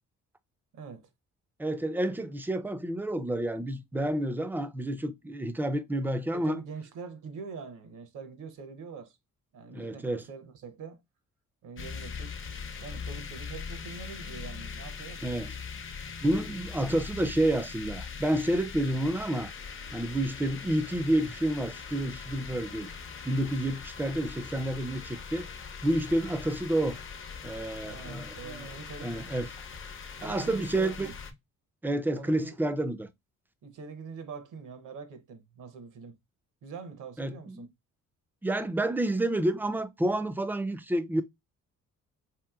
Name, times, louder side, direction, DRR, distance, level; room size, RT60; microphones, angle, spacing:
voice 1, 0.7-1.1 6.3-9.2 9.5-11.0 11.6-12.3 12.8-15.2 26.1-26.3 27.8-29.3 30.2-31.1 32.1-32.6 33.6-36.2 36.6-37.7, right 5 dB, 75° right, 0.8 m, -43 dB
voice 2, 1.6-6.6 9.7-10.2 15.2-15.5 16.2-19.5 19.9-22.9 23.2-25.5 25.8-27.0 27.4-28.7 29.0-29.5 30.2-31.1 31.8-33.1 37.2-37.7 38.4-41.2, right 1 dB, 5° right, 0.3 m, -29 dB
sound 1, 11.8-31.3, left 5 dB, 40° left, 0.6 m, -41 dB
3.1 x 2.9 x 2.3 m
cardioid pair, 95°, 32 cm